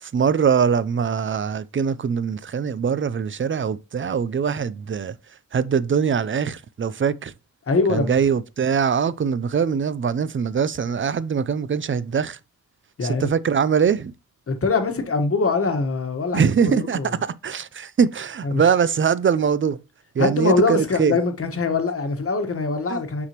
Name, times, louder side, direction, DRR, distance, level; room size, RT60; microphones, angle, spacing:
voice 1, 0.0-5.2 5.5-7.3 7.9-12.4 13.0-14.1 16.3-19.8 20.1-21.2 22.9-23.0, right 6 dB, 40° right, 0.5 m, -22 dB
voice 2, 7.7-8.2 13.0-13.3 14.5-17.1 18.4-18.6 20.2-23.3, left 4 dB, 45° left, 1.3 m, -23 dB
6.0 x 5.9 x 2.9 m
wide cardioid pair, 135°, 32 cm